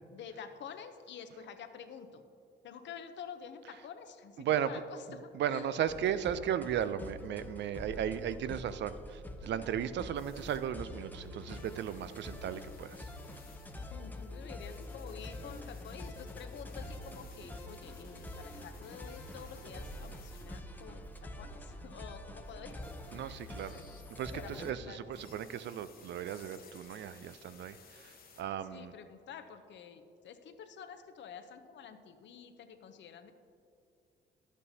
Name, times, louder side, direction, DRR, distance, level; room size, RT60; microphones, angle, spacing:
voice 1, 0.1-2.2 2.6-5.8 13.9-22.8 23.1-23.8 24.3-25.3 28.7-33.3, left 7 dB, 65° left, 8 dB, 0.7 m, -49 dB
voice 2, 4.4-4.7 5.1-13.1 23.1-23.8 24.2-28.9, right 9 dB, 65° right, 13 dB, 0.4 m, -36 dB
sound 1, 5.9-24.7, left 1 dB, 10° left, 0.6 m, -46 dB
sound 2, 10.1-21.6 22.4-24.7 25.1-28.4, left 4 dB, 50° left, 1.0 m, -58 dB
11.0 x 8.1 x 2.8 m, 2.5 s
cardioid pair, 90°, 20 cm